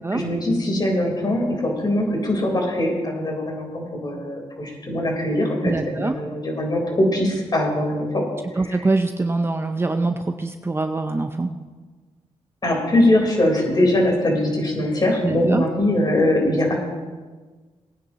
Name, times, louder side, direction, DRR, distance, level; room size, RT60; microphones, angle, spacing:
voice 1, 0.1-8.3 8.6-8.8 12.6-16.8, left 1 dB, 35° left, 0 dB, 4.2 m, -22 dB
voice 2, 5.6-6.1 8.6-11.5 15.2-15.6, right 3 dB, 20° right, 6 dB, 0.7 m, -23 dB
20.5 x 10.0 x 3.0 m, 1.4 s
cardioid pair, 85°, 11 cm